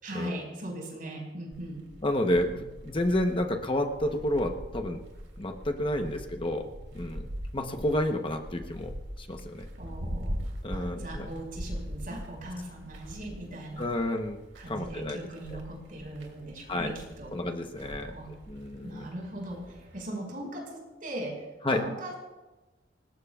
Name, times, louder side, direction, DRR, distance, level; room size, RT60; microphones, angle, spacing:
voice 1, 0.0-1.8 9.8-10.4 10.7-13.9 14.6-17.3 18.1-18.3 18.8-22.1, right 1 dB, 50° right, 0 dB, 5.2 m, -39 dB
sound 1, 1.5-20.1, equal, 75° right, 2.7 m, -42 dB
voice 2, 2.0-5.0 5.4-7.3 7.5-9.7 10.6-11.3 13.8-14.4 14.7-15.2 15.5-15.6 16.7-16.9 17.3-18.1 18.5-19.1 21.6-21.9, left 1 dB, 30° left, 4 dB, 0.9 m, -30 dB
25.0 x 19.5 x 2.4 m, 1.1 s
head